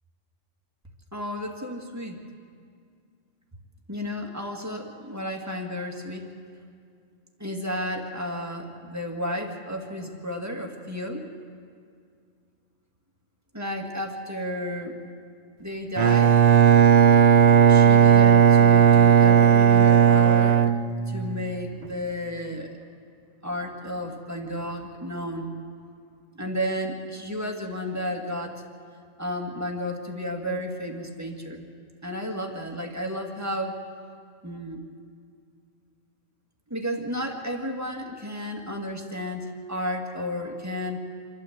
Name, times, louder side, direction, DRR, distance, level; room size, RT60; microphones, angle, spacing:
voice 1, 1.1-2.2 3.9-6.3 7.4-11.3 13.5-15.0 15.6-16.4 17.7-20.6 21.1-22.7 23.4-25.5 26.4-28.6 29.2-31.7 32.0-33.8 34.4-34.8 36.7-41.0, equal, 15° right, 1 dB, 1.8 m, -32 dB
Bowed string instrument, 16.0-21.4, right 9 dB, 55° right, 0.4 m, -16 dB
27.5 x 12.5 x 7.9 m, 2.3 s
omnidirectional pair, 1.4 m